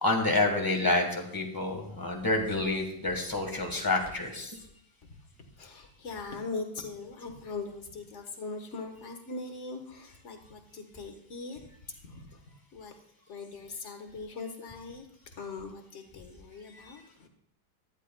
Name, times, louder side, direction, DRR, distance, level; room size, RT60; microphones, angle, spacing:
voice 1, 0.0-4.6 16.7-16.9, left 2 dB, 10° left, 3 dB, 1.1 m, -28 dB
voice 2, 5.4-11.6 12.0-12.4 12.7-12.9 13.3-15.1 15.4-17.3, left 3 dB, 40° left, 3 dB, 1.4 m, -41 dB
14.0 x 11.0 x 2.2 m, 0.74 s
omnidirectional pair, 2.2 m